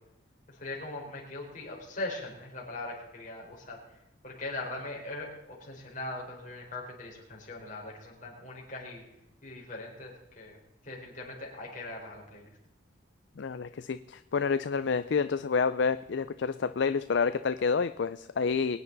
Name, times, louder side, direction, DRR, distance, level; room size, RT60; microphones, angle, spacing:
voice 1, 0.5-9.0 9.4-10.6 10.8-12.5, left 2 dB, 40° left, -2 dB, 4.3 m, -40 dB
voice 2, 13.4-18.8, left 5 dB, 60° left, 12 dB, 0.4 m, -29 dB
23.0 x 9.8 x 4.0 m, 0.94 s
head